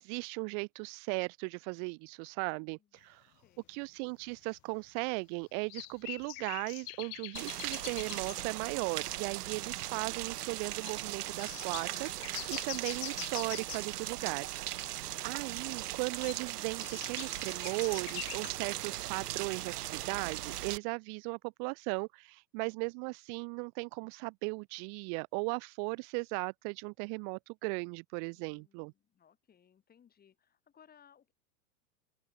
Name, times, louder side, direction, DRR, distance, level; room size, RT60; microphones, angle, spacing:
voice 1, 0.0-3.2 3.7-14.5 14.8-28.9, right 40 dB or more, 40° right, 1.7 m, -37 dB
voice 2, 2.4-3.0 3.4-3.8 14.7-16.0 28.3-31.3, left 8 dB, 20° left, 6.6 m, -65 dB
sound 1, 3.4-3.5 4.3-4.4 5.7-8.5 9.1-9.2 9.4-9.5 9.9-10.2 10.8-11.0 11.4-13.9 16.0-18.6, left 39 dB, 35° left, 1.2 m, -44 dB
Rain, 7.4-20.8, right 14 dB, 70° right, 3.2 m, -39 dB
open air
supercardioid pair, 145°, 48 cm